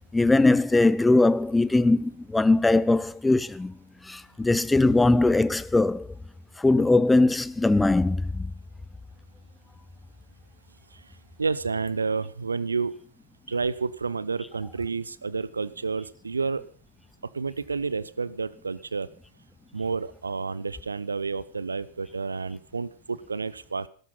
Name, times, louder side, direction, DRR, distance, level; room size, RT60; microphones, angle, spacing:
voice 1, 0.1-3.8 4.0-6.1 6.6-8.5, left 2 dB, 5° left, 0.7 m, -21 dB
voice 2, 11.4-12.9 13.5-16.6 17.3-19.1 19.7-23.9, right 4 dB, 75° right, 0.7 m, -30 dB
15.0 x 13.5 x 5.6 m
figure-of-eight pair, 90°, 0 cm